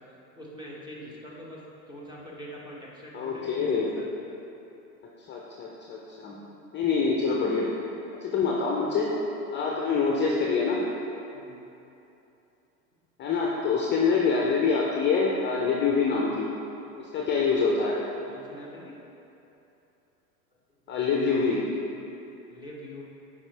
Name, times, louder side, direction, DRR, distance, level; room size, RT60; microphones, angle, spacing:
voice 1, 0.4-1.6 1.9-4.0 11.3-11.6 18.3-18.9 22.5-23.0, equal, 10° right, -4 dB, 1.2 m, -43 dB
voice 2, 3.1-3.9 5.3-6.4 6.7-7.9 8.2-9.1 9.5-10.9 13.2-16.5 17.0-18.0 20.9-21.6, left 4 dB, 25° left, -3 dB, 0.7 m, -25 dB
8.2 x 5.0 x 3.4 m, 2.9 s
hypercardioid pair, 110°, 46 cm